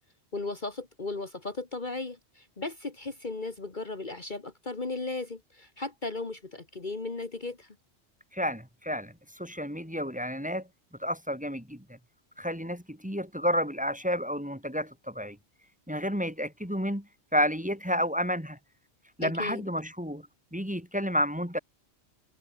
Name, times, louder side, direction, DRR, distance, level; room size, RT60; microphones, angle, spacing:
voice 1, 0.3-7.8 19.2-19.6, left 3 dB, 45° left, 2.1 m, -36 dB
voice 2, 8.3-10.7 11.0-12.0 12.4-15.4 15.9-17.1 17.3-18.6 19.2-21.6, equal, 5° right, 3.8 m, -31 dB
omnidirectional pair, 1.1 m